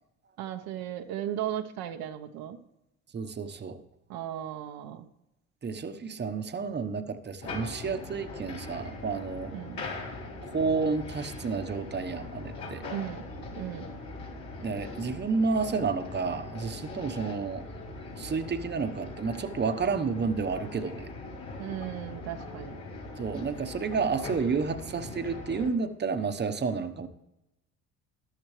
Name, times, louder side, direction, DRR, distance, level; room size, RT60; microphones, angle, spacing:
voice 1, 0.4-2.6 4.1-5.1 9.5-9.8 12.9-13.2 13.5-13.9 21.6-22.8, right 11 dB, 75° right, 5 dB, 1.1 m, -36 dB
voice 2, 3.1-3.8 5.6-9.5 10.4-12.8 14.6-17.6 18.2-21.1 23.2-27.1, right 5 dB, 30° right, 7 dB, 1.1 m, -30 dB
sound 1, 7.4-25.7, left 3 dB, 70° left, 4.1 m, -41 dB
14.0 x 11.5 x 3.3 m, 0.88 s
supercardioid pair, 80°, 36 cm